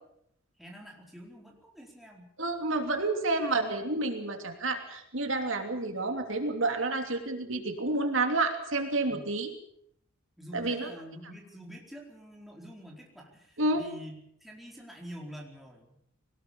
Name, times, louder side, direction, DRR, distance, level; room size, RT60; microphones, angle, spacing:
voice 1, 0.6-2.3 9.0-9.3 10.4-16.0, equal, ahead, -1 dB, 4.5 m, -47 dB
voice 2, 2.4-9.5 10.5-10.9 13.6-13.8, right 2 dB, 65° right, 5 dB, 3.1 m, -29 dB
22.5 x 19.0 x 7.2 m, 0.71 s
head